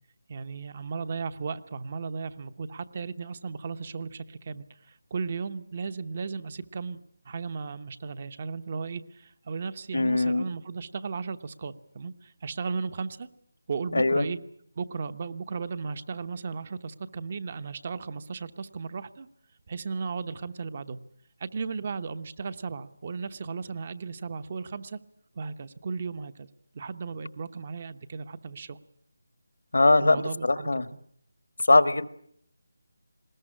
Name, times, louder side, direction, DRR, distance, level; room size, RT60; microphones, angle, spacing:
voice 1, 0.3-7.0 7.2-13.3 13.7-14.4 14.7-19.3 19.7-21.0 21.4-25.0 25.3-26.5 26.7-28.8 30.0-30.9, right 5 dB, 35° right, 14 dB, 1.0 m, -35 dB
voice 2, 9.9-10.5 13.9-14.2 29.7-30.9 31.6-32.1, left 2 dB, 80° left, 14 dB, 1.4 m, -21 dB
20.5 x 18.5 x 10.0 m, 0.68 s
figure-of-eight pair, 170°, 0 cm